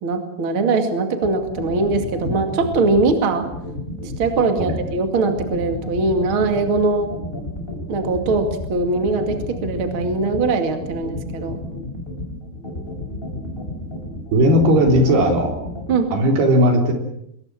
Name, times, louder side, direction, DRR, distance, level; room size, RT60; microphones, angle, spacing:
voice 1, 0.0-3.5 4.2-7.1 7.9-11.6 15.9-16.1, right 3 dB, 35° right, 6 dB, 2.4 m, -21 dB
sound 1, 1.2-15.9, left 1 dB, 10° left, 5.3 m, -31 dB
voice 2, 14.3-15.6 16.1-16.9, equal, 65° right, 3 dB, 5.6 m, -16 dB
25.0 x 21.5 x 7.6 m, 0.78 s
omnidirectional pair, 5.0 m